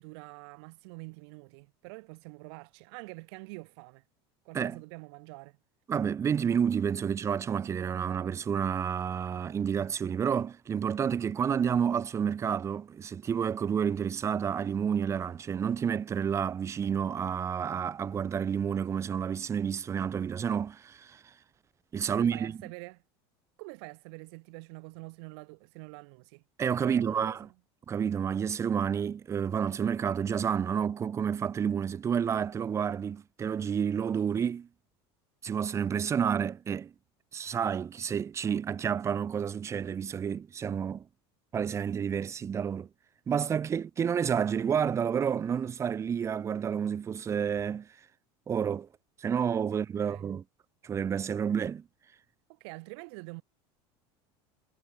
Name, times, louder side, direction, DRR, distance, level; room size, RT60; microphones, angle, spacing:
voice 1, 0.0-4.0 4.4-5.6 22.1-23.0 23.6-26.4 26.8-27.4 50.0-50.3 52.5-53.4, right 31 dB, 75° right, 0.6 m, -46 dB
voice 2, 5.9-21.3 21.9-22.6 26.6-27.5 27.9-34.7 35.4-36.9 37.3-41.1 41.5-42.9 43.3-47.9 48.5-48.9 49.2-50.4 50.8-51.8, right 7 dB, 20° right, 0.3 m, -30 dB
supercardioid pair, 115°, 14 cm